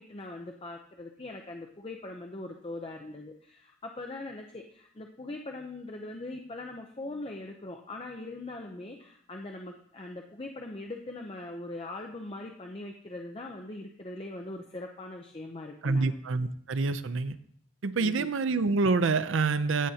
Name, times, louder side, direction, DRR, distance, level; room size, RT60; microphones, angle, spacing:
voice 1, 0.0-16.2 18.0-18.3, left 2 dB, 25° left, 2 dB, 0.6 m, -41 dB
voice 2, 15.8-17.4 17.8-19.9, right 4 dB, 70° right, 13 dB, 0.5 m, -27 dB
15.5 x 7.6 x 2.8 m, 0.65 s
head